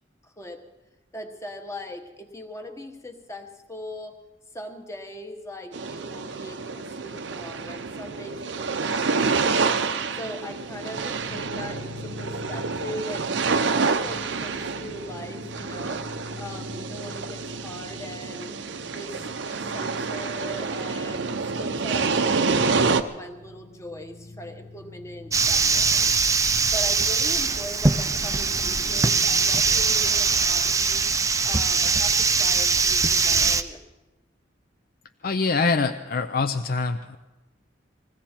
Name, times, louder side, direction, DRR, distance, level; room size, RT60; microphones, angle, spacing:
voice 1, 0.2-0.6 1.1-4.2 4.5-9.7 10.1-13.3 13.7-16.0 16.4-18.5 18.9-26.1 26.7-31.0 31.4-33.8, left 1 dB, 15° left, 4 dB, 1.2 m, -40 dB
sound 1, 5.7-23.0, right 4 dB, 75° right, 0.7 m, -28 dB
sound 2, 10.9-29.5, left 2 dB, 75° left, 1.0 m, -44 dB
sound 3, 25.3-33.6, right 5 dB, 15° right, 0.5 m, -22 dB
voice 2, 35.2-37.2, left 4 dB, 50° left, 8 dB, 0.5 m, -24 dB
21.0 x 15.5 x 4.4 m, 1.1 s
head